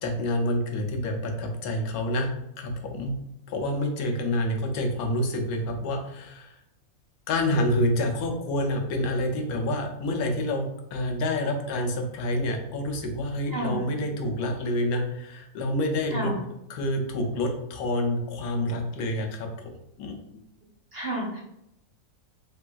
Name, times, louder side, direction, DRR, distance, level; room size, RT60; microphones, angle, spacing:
voice 1, 0.0-2.3 2.6-3.1 3.5-6.6 7.3-10.7 10.9-16.4 16.7-19.5 20.0-20.1, left 1 dB, 80° left, 3 dB, 1.1 m, -28 dB
voice 2, 13.5-13.9 16.1-16.4 20.9-21.4, right 1 dB, 55° right, -3 dB, 0.7 m, -30 dB
3.7 x 2.5 x 2.2 m, 0.82 s
omnidirectional pair, 1.6 m